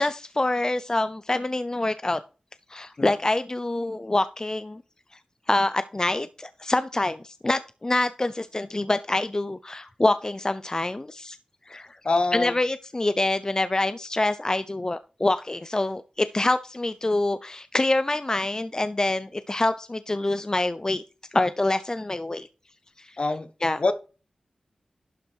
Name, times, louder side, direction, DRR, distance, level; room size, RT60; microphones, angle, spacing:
voice 1, 0.0-2.2 2.7-4.8 5.5-11.4 11.7-12.0 12.3-21.0 21.3-22.5 23.0-23.2 23.6-23.8, left 2 dB, 30° left, 0.6 m, -26 dB
voice 2, 12.0-12.6 23.2-23.5 23.8-23.9, left 3 dB, 55° left, 1.1 m, -24 dB
11.5 x 5.0 x 4.5 m
cardioid pair, 55°, 2 cm